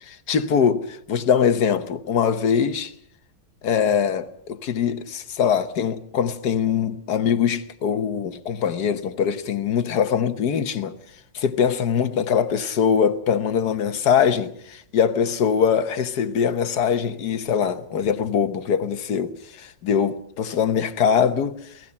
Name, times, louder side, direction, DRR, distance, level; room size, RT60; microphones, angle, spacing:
voice 1, 0.3-2.9 3.6-10.9 11.3-21.6, left 7 dB, 60° left, 1.6 m, -22 dB
29.5 x 18.0 x 5.6 m
omnidirectional pair, 2.0 m